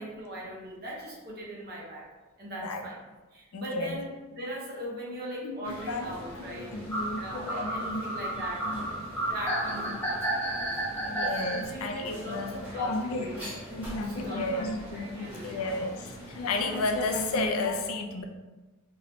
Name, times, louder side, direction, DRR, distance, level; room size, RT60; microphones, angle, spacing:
voice 1, 0.0-2.1 2.4-3.0 3.3-6.7 7.2-10.7 11.5-13.4 13.7-14.5 15.1-15.6, right 1 dB, 50° right, -3 dB, 0.9 m, -40 dB
voice 2, 2.5-2.8 3.5-4.0 5.4-8.0 8.6-8.9 10.9-18.2, left 2 dB, 80° left, 4 dB, 0.4 m, -33 dB
sound 1, 5.6-17.5, equal, 10° right, 1.1 m, -44 dB
sound 2, 6.9-11.6, right 1 dB, 10° left, 0.6 m, -31 dB
3.0 x 2.7 x 3.0 m, 1.2 s
head